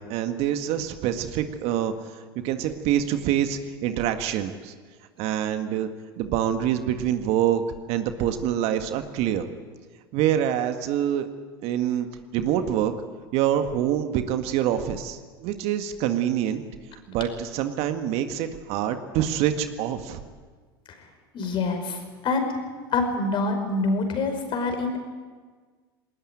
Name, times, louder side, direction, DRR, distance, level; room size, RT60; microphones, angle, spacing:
voice 1, 0.0-1.9 2.4-4.7 5.2-5.9 6.2-7.6 7.9-9.5 10.1-11.3 11.6-12.1 12.3-12.9 13.3-16.6 17.1-20.2, right 10 dB, 55° right, 8 dB, 1.8 m, -25 dB
voice 2, 21.3-22.6 22.9-25.0, left 3 dB, 40° left, 6 dB, 5.2 m, -26 dB
20.0 x 19.5 x 9.2 m, 1.5 s
hypercardioid pair, 85°, 13 cm